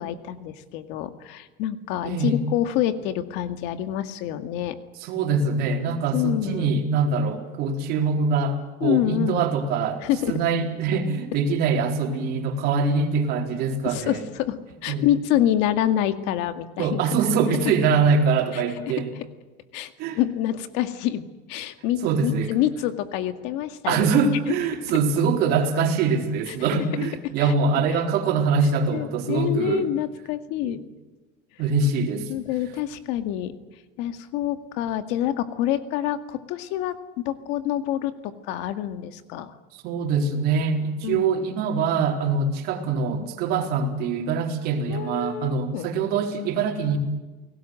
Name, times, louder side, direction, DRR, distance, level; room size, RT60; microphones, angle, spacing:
voice 1, 0.0-4.8 6.1-6.7 8.8-9.4 10.0-10.3 13.8-17.0 18.5-18.6 19.7-24.0 26.5-26.6 27.4-27.5 28.9-30.8 32.3-33.5 34.0-39.6 41.0-41.2 43.2-43.3 44.9-45.9, left 12 dB, 70° left, 9 dB, 2.1 m, -27 dB
voice 2, 2.0-2.4 5.0-14.2 14.9-15.1 16.8-19.1 20.0-20.2 22.0-22.6 23.9-29.9 30.6-30.8 31.6-32.3 39.7-47.0, right 5 dB, 60° right, 4 dB, 4.2 m, -24 dB
29.5 x 18.5 x 7.8 m, 1.2 s
cardioid pair, 145°, 19 cm